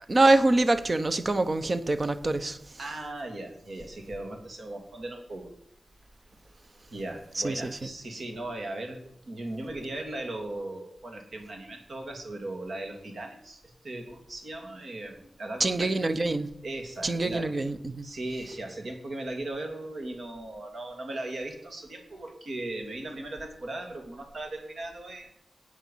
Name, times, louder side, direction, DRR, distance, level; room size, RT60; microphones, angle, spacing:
voice 1, 0.1-2.6 7.4-7.7 15.6-16.5 17.0-18.1, right 2 dB, 30° right, 0.9 m, -25 dB
voice 2, 2.8-5.5 6.9-9.0 9.3-15.9 16.6-17.5 18.0-25.3, right 2 dB, 55° right, 2.8 m, -38 dB
15.5 x 9.5 x 5.6 m
wide cardioid pair, 155°, 0 cm